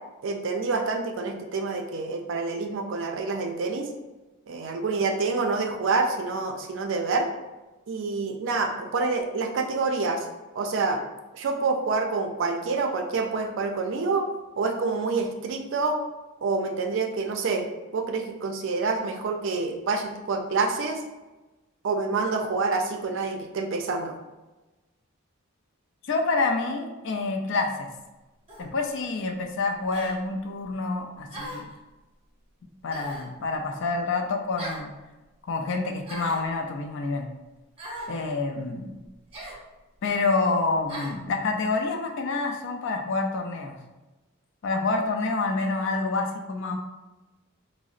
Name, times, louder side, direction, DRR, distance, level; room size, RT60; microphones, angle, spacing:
voice 1, 0.2-3.9 4.5-7.3 7.9-10.2 10.6-11.0 11.3-14.2 14.6-16.0 16.4-17.6 17.9-21.0 21.8-24.1, right 4 dB, 60° right, 3 dB, 0.4 m, -27 dB
voice 2, 26.1-27.9 28.6-31.7 32.8-34.9 35.5-37.3 38.1-39.0 40.0-43.8 44.6-46.8, left 3 dB, 60° left, 3 dB, 0.4 m, -27 dB
sound 1, 28.5-28.7 29.9-30.2 31.3-31.7 32.9-33.3 34.6-34.9 36.0-36.5 37.8-38.1 39.3-39.6 40.9-41.2, equal, 25° right, 0.7 m, -38 dB
3.8 x 2.0 x 2.4 m, 1.1 s
head